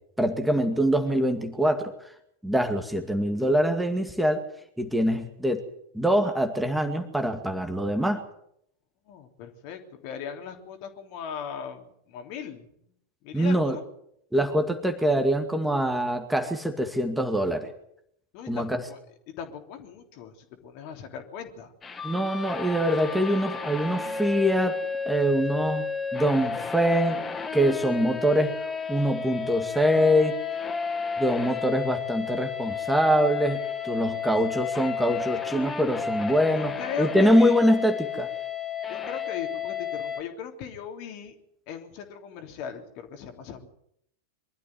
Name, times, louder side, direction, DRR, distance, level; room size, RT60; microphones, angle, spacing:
voice 1, 0.2-1.9 2.4-4.4 4.8-5.6 5.9-8.2 13.3-13.8 14.3-17.7 18.5-18.8 22.0-24.8 25.1-25.8 26.1-27.2 27.5-28.5 28.9-30.3 31.2-38.3, equal, 5° right, 5 dB, 2.2 m, -24 dB
voice 2, 9.1-12.7 13.2-13.8 18.3-19.0 19.3-21.7 36.5-37.6 38.9-41.3 41.7-43.7, left 7 dB, 45° left, 5 dB, 3.3 m, -38 dB
sound 1, 21.8-40.2, left 5 dB, 20° left, 2.0 m, -32 dB
23.5 x 13.5 x 9.5 m, 0.73 s
figure-of-eight pair, 90°, 0 cm